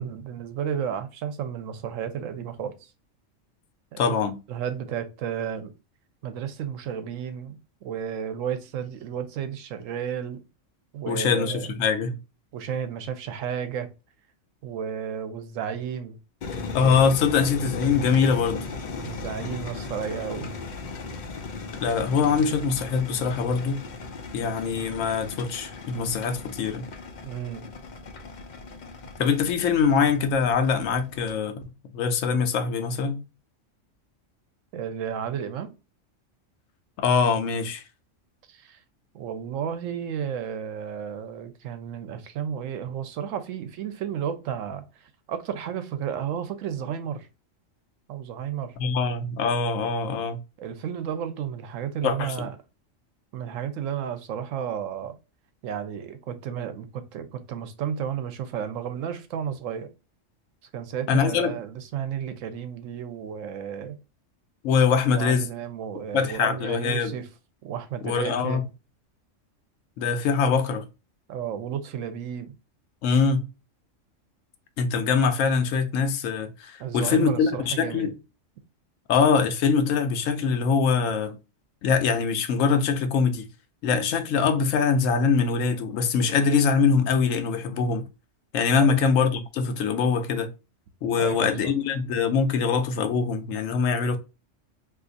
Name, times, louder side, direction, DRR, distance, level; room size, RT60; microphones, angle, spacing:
voice 1, 0.0-2.9 3.9-4.2 4.5-5.7 6.2-10.4 10.9-11.7 12.5-13.9 14.6-16.2 19.0-20.5 27.2-27.7 34.7-35.7 38.5-38.8 39.1-47.3 48.1-48.7 50.6-52.5 53.3-55.2 55.6-59.9 60.7-64.0 65.1-67.3 67.6-68.6 71.3-72.5 76.8-78.1 88.8-89.0 91.2-91.5, right 8 dB, 90° right, 1.0 m, -32 dB
voice 2, 4.0-4.4 11.1-12.2 16.7-18.7 21.8-23.8 24.3-26.8 29.2-31.6 31.9-33.2 37.0-37.8 48.8-50.4 52.0-52.5 61.1-61.6 64.6-65.5 66.1-67.2 68.0-68.6 70.0-70.8 73.0-73.4 74.8-78.1 79.1-81.4 81.8-83.5 83.8-88.1 88.5-90.5 91.0-94.2, left 5 dB, 85° left, 1.0 m, -23 dB
sound 1, 16.4-31.3, left 4 dB, 60° left, 0.5 m, -37 dB
2.7 x 2.4 x 3.8 m
omnidirectional pair, 1.3 m